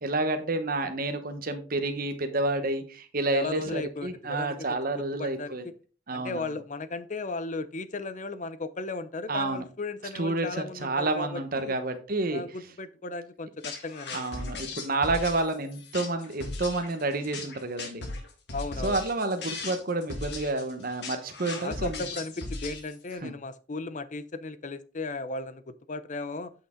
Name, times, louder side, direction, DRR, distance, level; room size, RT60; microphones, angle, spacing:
voice 1, 0.0-5.6 6.1-6.5 9.3-9.6 10.1-12.4 14.1-18.0 18.8-22.0 23.2-23.3, right 2 dB, 55° right, 7 dB, 1.1 m, -29 dB
voice 2, 3.3-4.7 5.0-5.7 6.1-11.7 12.3-14.4 18.5-19.0 21.6-26.5, left 3 dB, 45° left, 13 dB, 0.7 m, -36 dB
sound 1, 13.6-23.1, left 3 dB, 70° left, 2.1 m, -38 dB
8.4 x 6.1 x 3.7 m, 0.38 s
head